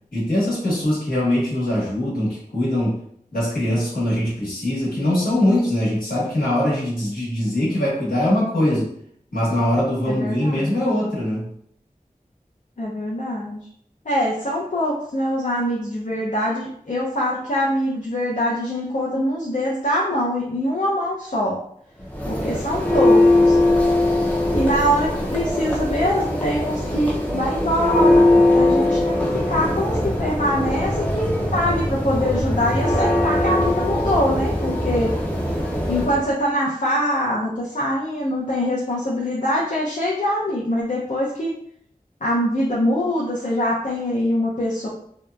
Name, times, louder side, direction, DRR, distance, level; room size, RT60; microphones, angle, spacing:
voice 1, 0.1-3.0 3.3-8.9 9.3-11.5, left 1 dB, 85° left, -7 dB, 1.2 m, -22 dB
voice 2, 10.1-10.7 12.8-13.6 14.0-21.6 22.2-23.6 24.5-35.1 35.9-41.5 42.2-44.9, equal, 60° left, -5 dB, 0.5 m, -23 dB
Church bell, 22.0-36.3, left 1 dB, 10° left, 0.4 m, -20 dB
2.8 x 2.1 x 2.2 m, 0.67 s
wide cardioid pair, 45°, 15 cm